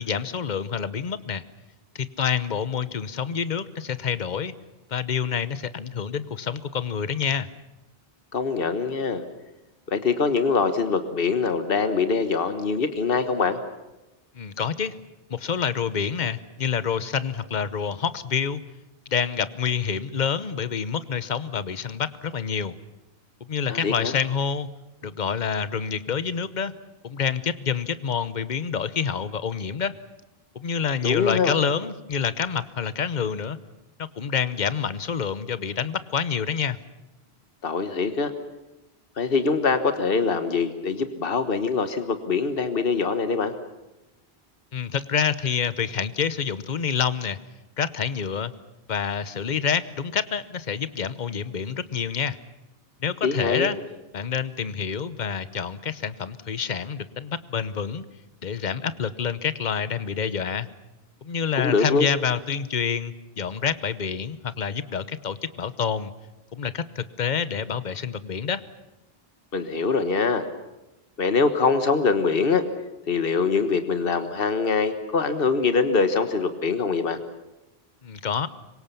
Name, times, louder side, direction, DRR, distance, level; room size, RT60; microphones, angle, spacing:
voice 1, 0.0-1.4 1.9-4.5 4.9-7.5 14.3-14.9 15.3-18.6 19.1-22.7 23.5-24.7 25.0-26.7 27.0-29.9 30.5-33.6 34.0-36.8 44.7-47.4 47.8-48.5 48.9-52.4 53.0-53.8 54.1-58.1 58.4-60.7 61.2-66.1 66.5-68.6 78.0-78.5, left 7 dB, 50° left, 15 dB, 1.1 m, -27 dB
voice 2, 8.3-9.2 9.9-13.6 23.7-24.1 31.0-31.5 37.6-38.3 39.2-43.5 53.2-53.7 61.6-62.1 69.5-70.4 71.2-72.6 73.1-77.2, left 4 dB, 65° left, 9 dB, 1.6 m, -23 dB
26.0 x 23.5 x 7.1 m, 1.0 s
omnidirectional pair, 1.0 m